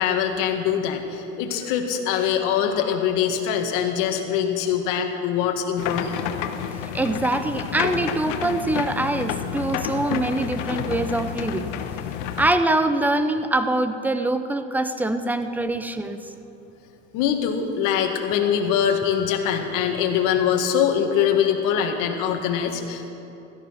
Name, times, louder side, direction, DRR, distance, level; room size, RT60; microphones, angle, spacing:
voice 1, 0.0-6.2 17.1-23.1, left 8 dB, 55° left, 4 dB, 1.9 m, -23 dB
sound 1, 5.8-12.5, left 9 dB, 75° left, 1.2 m, -29 dB
voice 2, 6.9-11.7 12.4-16.2, right 2 dB, 5° right, 9 dB, 0.7 m, -24 dB
16.5 x 13.0 x 5.8 m, 3.0 s
supercardioid pair, 125°, 37 cm